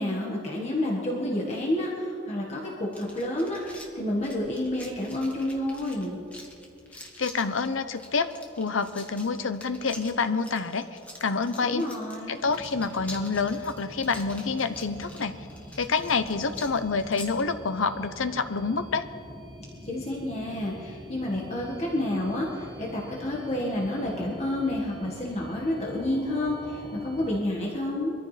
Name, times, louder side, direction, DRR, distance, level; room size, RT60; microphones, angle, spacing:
voice 1, 0.0-6.2 11.6-12.4 19.8-28.1, left 1 dB, 35° left, -3 dB, 1.6 m, -29 dB
sound 1, 2.9-17.4, left 1 dB, 5° left, 1.5 m, -47 dB
voice 2, 7.2-8.3 8.6-10.8 11.2-11.8 12.3-15.3 15.8-19.0, left 4 dB, 85° left, 10 dB, 0.8 m, -27 dB
sound 2, 12.4-27.4, equal, 25° right, 1.7 m, -44 dB
23.0 x 14.0 x 3.3 m, 2.5 s
head